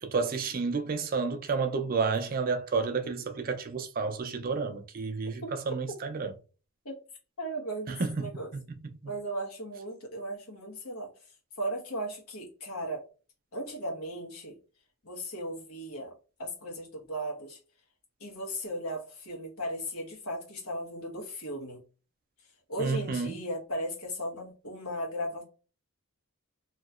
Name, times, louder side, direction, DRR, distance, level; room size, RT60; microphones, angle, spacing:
voice 1, 0.0-6.3 7.9-8.6 22.8-23.3, right 4 dB, 40° right, 0.4 m, -31 dB
voice 2, 7.4-8.5 9.0-11.1 11.6-13.0 13.5-14.6 15.0-16.1 16.4-17.6 18.2-21.8 22.7-25.4, right 1 dB, 80° left, 1.3 m, -36 dB
2.9 x 2.8 x 2.4 m
head